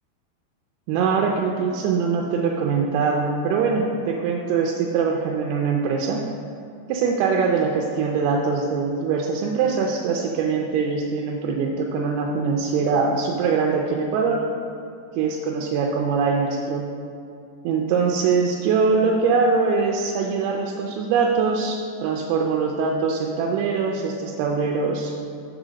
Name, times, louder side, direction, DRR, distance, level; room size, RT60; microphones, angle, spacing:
voice 1, 0.9-6.2 6.9-14.4 15.2-16.9 17.6-25.1, right 5 dB, 90° right, 0 dB, 2.5 m, -22 dB
6.9 x 3.8 x 6.2 m, 2.5 s
omnidirectional pair, 4.3 m